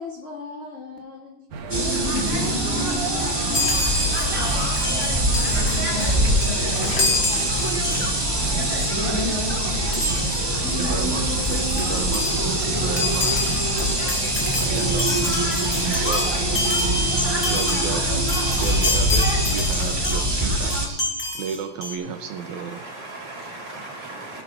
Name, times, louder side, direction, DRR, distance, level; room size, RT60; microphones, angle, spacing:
voice 1, 0.0-1.4 2.0-3.8 4.2-6.1 6.5-7.5 9.2-9.4, left 1 dB, 80° left, 0.5 m, -37 dB
sound 1, 1.5-19.8, right 4 dB, 65° right, 2.3 m, -35 dB
sound 2, 1.7-20.9, right 1 dB, 10° right, 1.2 m, -23 dB
Chime, 3.5-8.5 8.8-9.0 9.9-10.5 11.1-11.2 11.4-20.4 20.7-21.9, left 2 dB, 30° left, 1.5 m, -28 dB
voice 2, 10.8-13.6 14.6-15.1 15.9-16.4 17.5-18.1 18.6-21.0 21.3-22.8, right 7 dB, 80° right, 2.2 m, -32 dB
voice 3, 21.9-24.4, right 2 dB, 50° right, 4.8 m, -38 dB
16.5 x 12.5 x 2.6 m
omnidirectional pair, 3.4 m